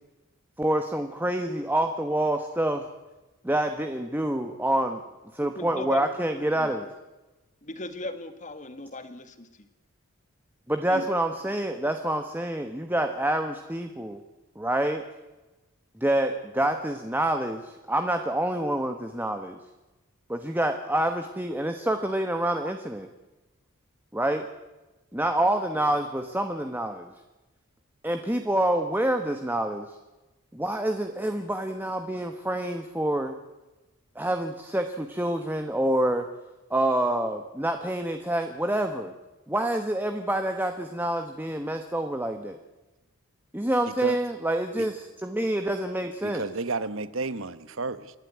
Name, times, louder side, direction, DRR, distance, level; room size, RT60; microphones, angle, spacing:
voice 1, 0.6-2.8 3.4-5.0 5.3-6.9 10.7-14.2 14.6-15.0 16.0-19.6 20.3-23.1 24.1-24.5 25.1-27.1 28.0-30.0 30.5-33.3 34.1-36.2 36.7-39.1 39.5-42.6 43.5-46.4, right 1 dB, 10° right, 1.1 m, -27 dB
voice 2, 5.4-6.2 6.5-6.7 7.6-9.7 10.9-11.1, left 1 dB, 35° left, 1.7 m, -38 dB
voice 3, 46.2-48.1, right 3 dB, 60° right, 1.0 m, -31 dB
28.0 x 12.0 x 9.6 m
head